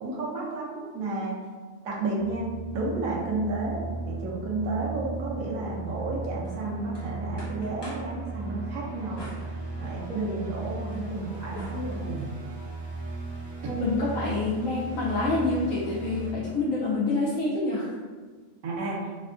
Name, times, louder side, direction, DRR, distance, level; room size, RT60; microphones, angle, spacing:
voice 1, 0.0-1.4 1.8-9.2 9.8-12.3 18.6-19.0, right 2 dB, 90° right, -4 dB, 1.2 m, -32 dB
sound 1, 2.2-16.3, right 3 dB, 20° right, 1.1 m, -37 dB
sound 2, 6.4-8.2 9.2-10.2 10.6-12.3, left 1 dB, 30° left, 0.5 m, -48 dB
voice 2, 13.7-18.0, left 2 dB, 75° left, -7 dB, 1.0 m, -27 dB
3.3 x 2.2 x 2.4 m, 1.4 s
omnidirectional pair, 1.4 m